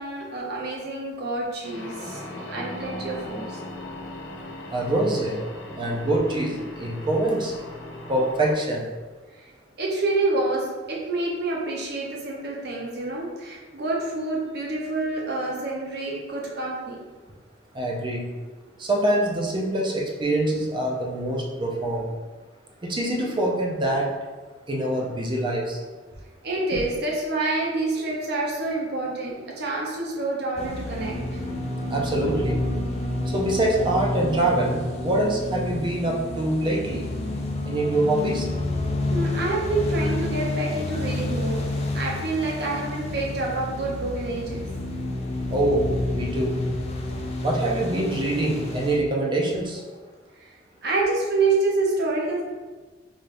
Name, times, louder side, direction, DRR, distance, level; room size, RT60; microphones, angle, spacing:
voice 1, 0.0-2.2 2.5-3.6 9.4-9.5 9.8-17.0 26.4-31.4 39.1-44.7 50.4-50.5 50.8-52.4, right 2 dB, 60° right, -3 dB, 0.8 m, -27 dB
sound 1, 1.6-8.5, left 1 dB, 75° left, 0.6 m, -38 dB
voice 2, 4.7-5.4 5.8-7.5 8.1-8.8 17.7-18.3 18.8-22.1 22.8-24.1 24.7-25.8 31.9-32.6 33.3-37.1 37.7-38.5 45.5-46.7 47.4-49.8, right 1 dB, 25° right, -2 dB, 0.5 m, -24 dB
sound 2, 30.6-49.0, left 2 dB, 35° left, 0.4 m, -29 dB
4.0 x 2.3 x 3.3 m, 1.3 s
head